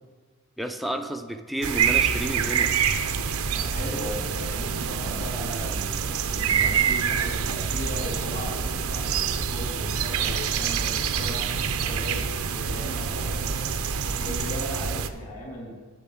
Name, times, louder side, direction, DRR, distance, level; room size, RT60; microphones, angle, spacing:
voice 1, 0.6-2.7, right 1 dB, ahead, 5 dB, 0.6 m, -31 dB
sound 1, 1.6-15.1, right 7 dB, 80° right, 0.7 m, -26 dB
voice 2, 3.5-12.2 12.5-15.7, equal, 35° left, -2 dB, 3.7 m, -37 dB
8.8 x 7.0 x 8.5 m, 1.5 s
head